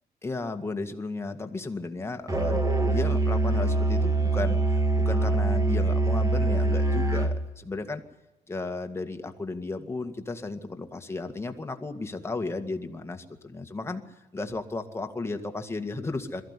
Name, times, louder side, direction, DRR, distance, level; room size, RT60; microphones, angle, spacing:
voice 1, 0.2-8.0 8.5-16.4, left 3 dB, 15° left, 6 dB, 2.0 m, -34 dB
Musical instrument, 2.3-7.4, right 2 dB, 20° right, 2.4 m, -24 dB
22.0 x 14.5 x 9.9 m, 1.0 s
cardioid pair, 110°, 17 cm